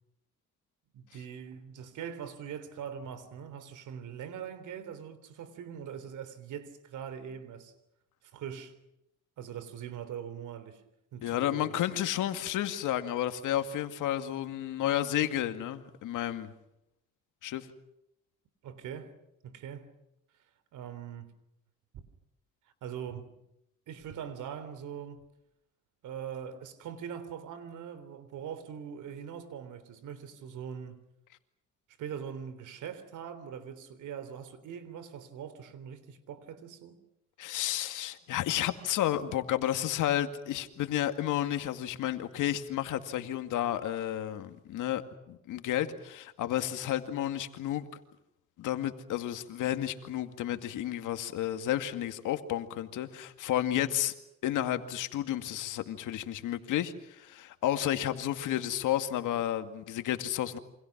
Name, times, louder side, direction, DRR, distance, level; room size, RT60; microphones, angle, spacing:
voice 1, 0.9-7.7 8.3-8.8 9.4-10.8 11.1-11.8 18.6-19.1 19.4-19.9 20.7-21.3 22.8-23.3 23.9-25.2 26.0-31.0 32.0-37.0, right 8 dB, 80° right, 3.6 m, -42 dB
voice 2, 11.2-16.5 17.4-17.7 37.4-47.8 48.6-54.1 54.4-60.6, left 12 dB, 85° left, 2.2 m, -31 dB
29.0 x 25.5 x 6.1 m
cardioid pair, 90°, 30 cm